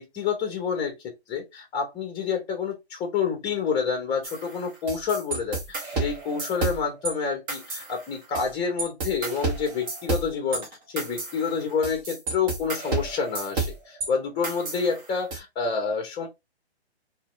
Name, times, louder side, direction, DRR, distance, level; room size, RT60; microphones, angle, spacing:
voice 1, 0.0-10.7 10.9-16.3, left 6 dB, 15° left, 1.1 m, -28 dB
sound 1, 4.2-7.1 7.5-8.5 8.8-14.1 14.4-15.4, right 3 dB, 20° right, 0.7 m, -31 dB
3.9 x 2.7 x 2.3 m
hypercardioid pair, 145°, 33 cm